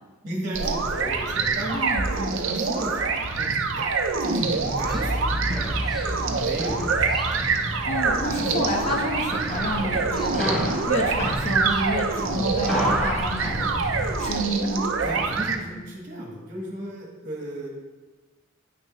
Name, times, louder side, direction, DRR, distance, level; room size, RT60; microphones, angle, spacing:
voice 1, 0.2-5.2 6.3-7.5 9.7-9.9 15.0-17.7, right 1 dB, 40° right, -1 dB, 1.5 m, -35 dB
sound 1, 0.5-15.6, right 4 dB, 65° right, 0.6 m, -26 dB
voice 2, 1.7-2.4 7.8-13.8 14.2-14.9, equal, 35° left, 0 dB, 1.2 m, -29 dB
sound 2, 4.4-14.3, equal, ahead, 2.0 m, -31 dB
9.4 x 6.2 x 3.1 m, 1.2 s
head